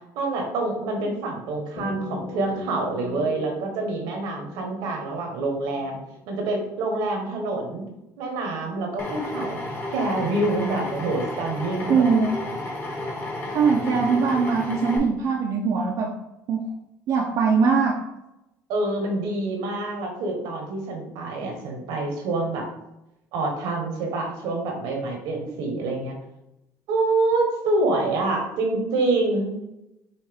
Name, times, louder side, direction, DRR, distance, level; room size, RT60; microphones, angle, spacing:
voice 1, 0.1-6.0 6.3-7.8 8.2-9.6 9.9-12.0 18.7-22.7 23.3-26.1 26.9-29.5, right 2 dB, 80° right, 2 dB, 1.2 m, -26 dB
sound 1, 1.8-6.4, left 3 dB, 75° left, 1.0 m, -39 dB
Drill, 9.0-15.0, left 1 dB, 30° left, 1.5 m, -32 dB
voice 2, 11.9-12.6 13.5-16.1 16.5-16.6 17.1-18.0 25.3-25.5, right 5 dB, 65° right, -1 dB, 0.6 m, -22 dB
5.6 x 2.5 x 3.5 m, 0.89 s
supercardioid pair, 95°, 7 cm